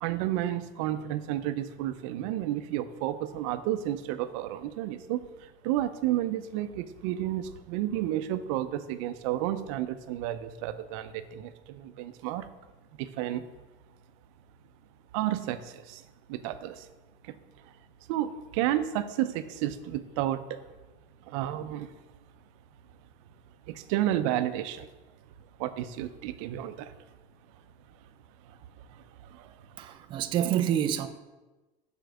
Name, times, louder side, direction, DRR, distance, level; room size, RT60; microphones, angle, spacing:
voice 1, 0.0-12.5 13.0-13.4 15.1-16.0 16.3-16.9 17.2-17.4 18.1-20.7 21.3-21.9 23.7-24.9 25.6-26.9 28.5-28.6 28.9-29.0 29.3-29.5, right 13 dB, 80° right, 0.6 m, -31 dB
voice 2, 29.8-31.1, right 10 dB, 30° right, 0.4 m, -27 dB
7.0 x 4.6 x 6.3 m
cardioid pair, 170°, 16 cm